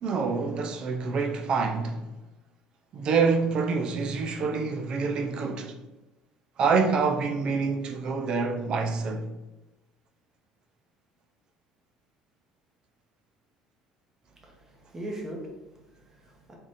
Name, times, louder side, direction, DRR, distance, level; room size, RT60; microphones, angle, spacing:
voice 1, 0.0-2.0 2.9-5.8 6.6-9.3, right 4 dB, 45° right, 0.4 m, -26 dB
voice 2, 14.4-16.6, right 1 dB, 20° right, 0.9 m, -40 dB
3.6 x 2.4 x 4.0 m
cardioid pair, 115°, 2 cm